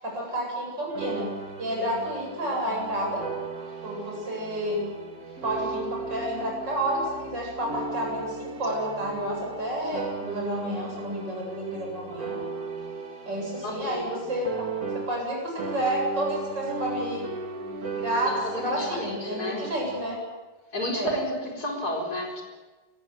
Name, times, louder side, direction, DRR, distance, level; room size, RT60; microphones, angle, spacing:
voice 1, 0.0-1.3 1.6-3.2 3.8-4.8 5.4-12.4 13.3-14.7 14.9-17.3 17.9-20.2 20.9-21.1, right 1 dB, 70° right, -1 dB, 8.9 m, -30 dB
sound 1, 0.9-15.3 15.6-20.0, right 4 dB, 50° right, 2.7 m, -37 dB
voice 2, 13.6-14.3 18.2-19.7 20.7-22.4, equal, 55° left, 1 dB, 5.1 m, -31 dB
28.0 x 15.5 x 9.4 m, 1.2 s
omnidirectional pair, 2.0 m